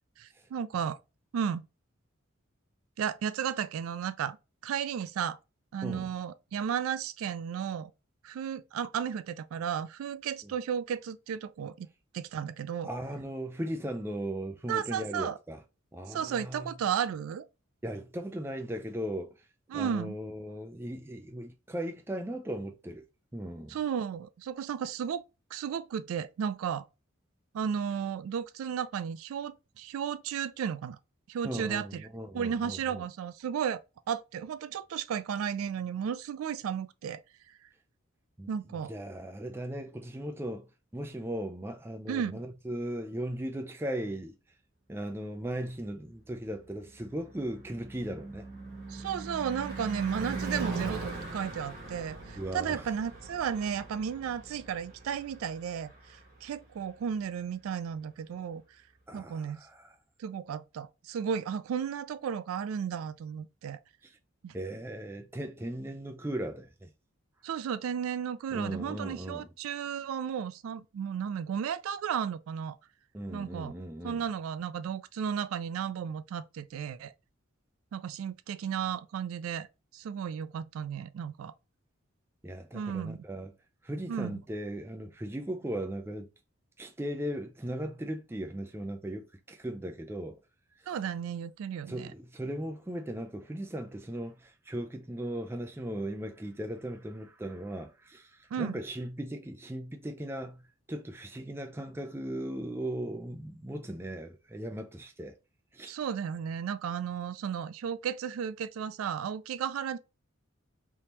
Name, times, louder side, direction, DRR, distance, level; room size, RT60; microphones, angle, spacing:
voice 1, 0.2-1.0 1.3-1.6 3.0-4.4 4.6-5.4 5.7-7.9 8.2-11.9 12.1-12.9 14.7-15.4 16.1-17.5 19.7-20.2 23.7-25.2 25.5-26.9 27.5-31.0 31.3-32.1 32.3-33.8 34.1-37.2 37.5-37.6 38.5-38.9 42.1-42.4 48.9-58.6 59.1-59.7 60.2-63.8 64.4-64.5 67.4-72.8 73.3-73.7 74.0-77.1 77.9-79.7 79.9-81.5 82.7-83.2 84.1-84.4 90.9-92.1 98.5-98.8 105.9-110.0, right 8 dB, 90° right, 0.3 m, -34 dB
voice 2, 12.8-15.6 15.9-16.7 17.8-19.3 19.7-23.0 23.3-23.8 31.4-33.0 38.4-38.5 38.9-40.7 40.9-44.3 44.9-48.5 52.4-52.8 59.1-59.9 64.5-66.9 68.5-69.5 73.1-74.2 82.4-83.5 83.8-86.3 86.8-90.4 91.9-98.3 98.6-100.6 100.9-105.4 105.7-105.9, right 1 dB, 10° right, 0.4 m, -37 dB
Car passing by / Truck / Engine, 46.6-56.8, right 3 dB, 45° right, 1.5 m, -41 dB
3.5 x 2.8 x 2.9 m
head